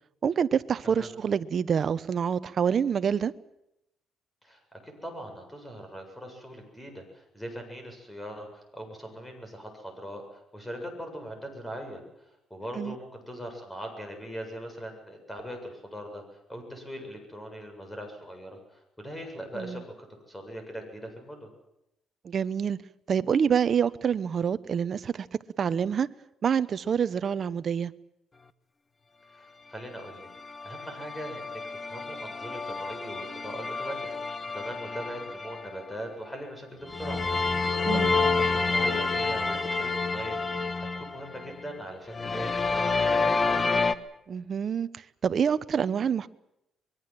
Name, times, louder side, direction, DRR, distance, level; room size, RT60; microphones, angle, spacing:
voice 1, 0.2-3.3 12.8-13.0 19.5-19.8 22.2-22.8 23.1-25.3 25.6-26.1 26.4-27.9 37.9-38.1 44.3-44.9 45.2-46.3, right 7 dB, 45° right, 1.0 m, -26 dB
voice 2, 4.4-12.0 12.5-16.2 16.5-19.9 20.3-21.5 29.3-30.3 30.6-34.0 34.2-43.7, equal, 10° left, 7.6 m, -41 dB
sound 1, 30.1-35.9 36.9-41.8 42.1-44.0, left 4 dB, 25° left, 1.3 m, -29 dB
24.5 x 22.0 x 7.8 m
cardioid pair, 115°, 0 cm